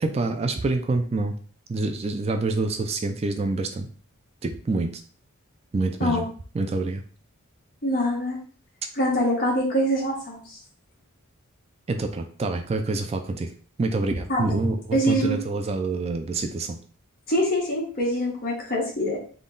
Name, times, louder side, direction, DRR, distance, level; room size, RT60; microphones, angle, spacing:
voice 1, 0.0-1.4 1.7-3.9 4.4-4.9 5.7-6.3 6.5-7.0 11.9-13.5 13.8-16.8, right 3 dB, 30° right, 5 dB, 0.3 m, -26 dB
voice 2, 7.8-8.4 8.9-10.6 14.3-14.4 14.9-15.4 17.3-19.2, equal, 45° left, -4 dB, 1.4 m, -24 dB
3.6 x 2.3 x 3.8 m, 0.43 s
head